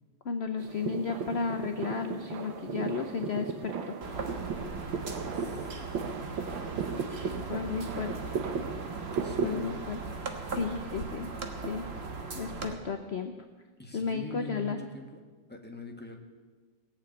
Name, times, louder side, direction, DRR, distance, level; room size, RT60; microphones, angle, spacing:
voice 1, 0.2-3.9 7.1-8.3 9.4-10.0 10.4-11.3 11.7-11.9 12.3-13.3 13.9-14.8, left 5 dB, 55° left, 6 dB, 0.7 m, -34 dB
sound 1, 0.6-9.8, right 5 dB, 75° right, 1.8 m, -36 dB
sound 2, 4.0-12.7, right 3 dB, 35° right, 1.4 m, -39 dB
voice 2, 5.1-6.2 9.0-9.8 12.5-12.6 13.8-15.2 15.5-16.2, left 1 dB, 5° left, 1 dB, 1.4 m, -45 dB
18.0 x 7.3 x 9.1 m, 1.4 s
omnidirectional pair, 2.1 m